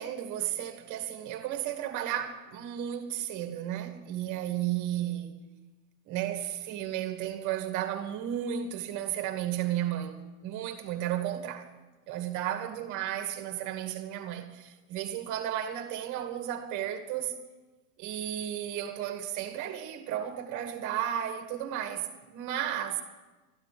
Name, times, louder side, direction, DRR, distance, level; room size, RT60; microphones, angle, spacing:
voice 1, 0.0-5.4 6.1-10.2 10.4-11.7 12.1-17.4 18.0-23.0, right 11 dB, 45° right, 2.3 m, -33 dB
12.5 x 12.0 x 8.6 m
supercardioid pair, 125°, 40 cm